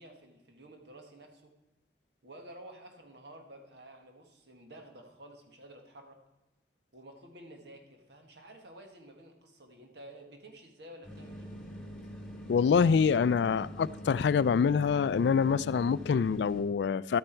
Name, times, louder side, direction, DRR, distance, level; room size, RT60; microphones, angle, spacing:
voice 1, 0.0-1.5 2.2-6.2 6.9-11.5, right 1 dB, 75° right, 1.6 m, -51 dB
sound 1, 11.0-16.6, equal, 5° left, 2.0 m, -44 dB
voice 2, 12.5-17.2, left 6 dB, 75° left, 0.3 m, -26 dB
12.0 x 9.0 x 4.4 m
head